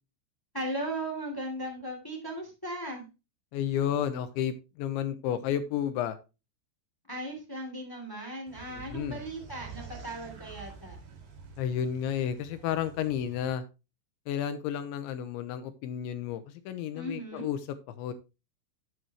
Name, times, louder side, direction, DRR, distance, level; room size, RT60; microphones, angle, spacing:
voice 1, 0.5-3.0 7.1-11.0 16.9-17.5, right 1 dB, 10° left, 2 dB, 1.1 m, -37 dB
voice 2, 3.5-6.2 8.7-9.2 11.6-13.6 14.3-17.6 18.0-18.1, left 9 dB, 80° left, 11 dB, 2.8 m, -32 dB
sound 1, 8.5-13.5, right 5 dB, 50° right, 3.5 m, -48 dB
11.5 x 7.7 x 3.0 m, 0.28 s
omnidirectional pair, 5.8 m